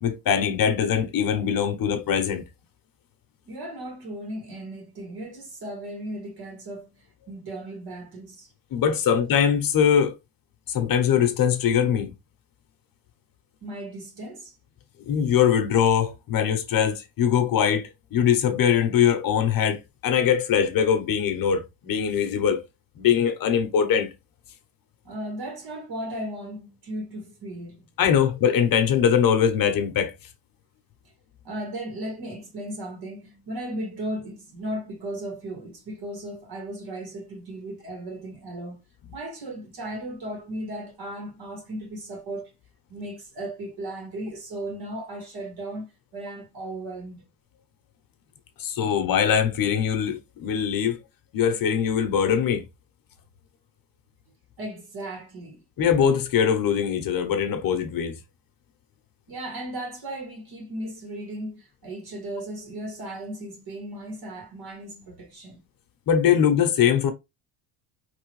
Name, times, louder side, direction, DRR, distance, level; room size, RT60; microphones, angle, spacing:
voice 1, 0.0-2.4 8.7-10.1 10.7-12.1 15.0-22.6 23.0-24.1 28.0-30.1 48.6-51.0 51.3-52.6 55.8-58.2 66.1-67.1, left 8 dB, 50° left, 1.0 m, -22 dB
voice 2, 3.4-8.5 13.6-14.6 25.0-27.9 31.4-38.8 39.1-42.5 42.9-45.9 46.1-47.3 54.6-55.6 59.3-65.7, right 1 dB, 50° right, 2.3 m, -36 dB
4.8 x 3.4 x 3.1 m
cardioid pair, 120°, 46 cm